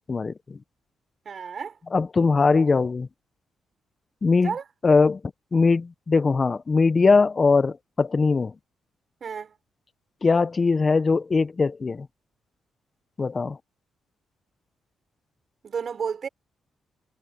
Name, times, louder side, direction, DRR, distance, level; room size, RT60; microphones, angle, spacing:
voice 1, 0.1-0.6 1.9-3.1 4.2-4.5 4.8-5.2 5.5-8.5 10.2-12.1 13.2-13.6, left 4 dB, 40° left, 0.9 m, -21 dB
voice 2, 1.3-1.8 4.4-4.6 9.2-9.6 15.6-16.3, right 6 dB, 55° right, 3.9 m, -31 dB
supercardioid pair, 55°, 0 cm